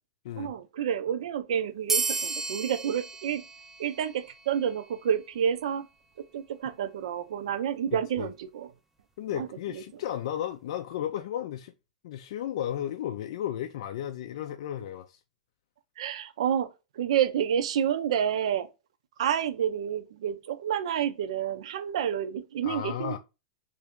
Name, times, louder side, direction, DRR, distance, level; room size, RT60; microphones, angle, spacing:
voice 1, 0.4-3.4 3.8-5.9 6.2-8.7 9.3-9.8 16.0-16.7 16.9-18.7 19.2-23.2, right 9 dB, 75° right, 0.5 m, -29 dB
sound 1, 1.9-4.9, right 4 dB, 10° right, 0.4 m, -33 dB
voice 2, 9.2-11.7 12.0-15.2 22.6-23.2, left 11 dB, 65° left, 0.4 m, -34 dB
3.2 x 2.6 x 3.5 m
hypercardioid pair, 130°, 3 cm